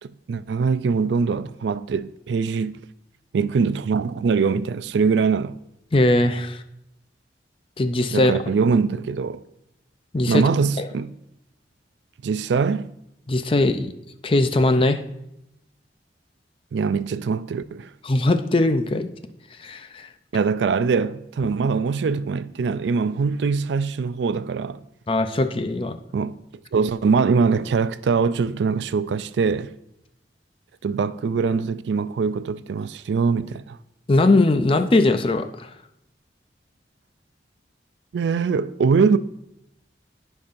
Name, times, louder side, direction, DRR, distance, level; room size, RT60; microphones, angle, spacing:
voice 1, 0.0-2.8 3.3-5.5 8.1-9.4 10.3-11.1 12.2-12.9 16.7-17.9 20.3-24.8 26.1-26.4 26.7-29.7 30.8-33.8 38.1-39.2, right 5 dB, 80° right, 0.4 m, -22 dB
voice 2, 5.9-6.6 7.8-8.3 10.1-10.4 13.3-13.9 14.2-15.0 18.0-19.1 19.6-20.1 25.1-26.0 34.1-35.7, left 2 dB, 30° left, 0.5 m, -20 dB
14.5 x 5.5 x 2.6 m
head